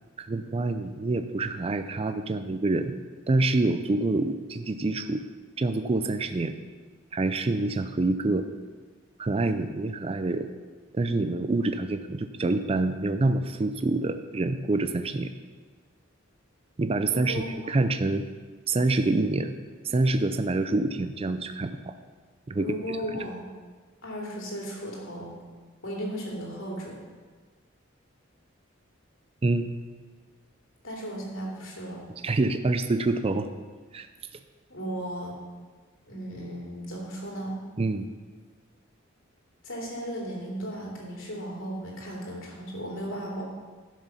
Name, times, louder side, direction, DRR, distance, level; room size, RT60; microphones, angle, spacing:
voice 1, 0.2-2.9 3.3-5.2 5.6-6.5 7.1-8.5 9.2-10.5 10.9-15.3 16.8-18.2 18.7-19.5 19.8-21.9 22.5-22.8 23.1-23.2 29.4-29.7 32.2-33.5 33.9-34.1 37.8-38.1, right 2 dB, 30° right, 9 dB, 0.4 m, -26 dB
voice 2, 17.1-17.8 22.6-23.5 24.0-25.3 25.8-27.0 30.8-32.0 34.7-35.4 36.1-37.6 39.6-43.4, equal, 75° left, -3 dB, 3.0 m, -35 dB
11.0 x 6.2 x 5.7 m, 1.4 s
head